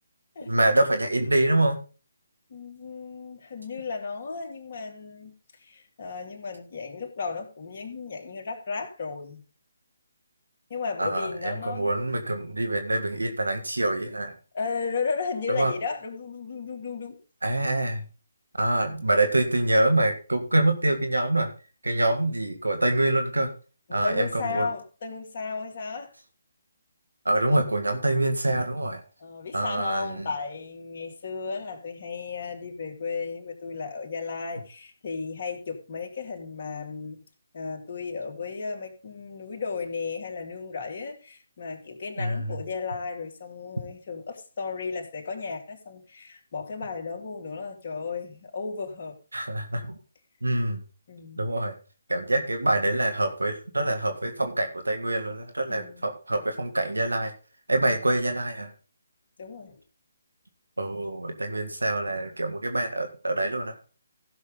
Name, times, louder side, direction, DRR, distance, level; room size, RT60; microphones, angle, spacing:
voice 1, 0.5-1.8 11.0-14.3 15.5-15.7 17.4-18.0 18.6-21.5 21.8-23.5 23.9-24.7 27.3-29.0 29.5-30.3 42.2-42.6 49.3-50.0 50.4-50.8 51.4-51.8 52.1-57.3 57.7-58.7 60.8-63.8, right 1 dB, 90° right, 1.8 m, -25 dB
voice 2, 2.5-5.3 5.6-9.4 10.7-11.9 14.5-17.2 23.9-26.1 29.2-37.2 37.5-49.2 51.1-51.5 55.7-56.1 57.8-58.0 59.4-59.8, left 5 dB, 45° left, 2.6 m, -34 dB
16.0 x 6.5 x 3.8 m
figure-of-eight pair, 145°, 0 cm